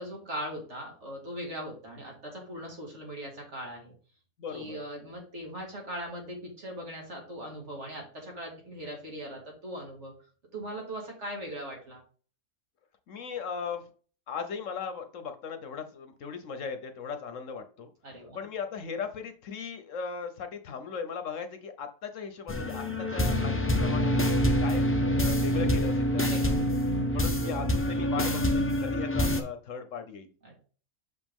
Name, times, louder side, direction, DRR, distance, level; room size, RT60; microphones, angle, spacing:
voice 1, 0.0-3.9 4.5-10.1 10.5-12.0 18.0-18.4 26.2-26.6 30.4-30.6, equal, 55° right, 0 dB, 2.5 m, -40 dB
voice 2, 4.4-4.8 13.1-13.9 14.3-17.9 18.3-26.6 27.1-30.3, left 6 dB, 65° left, 8 dB, 1.1 m, -38 dB
sound 1, 22.5-29.4, equal, 15° left, 0.5 m, -26 dB
6.5 x 5.1 x 3.6 m, 0.40 s
omnidirectional pair, 1.5 m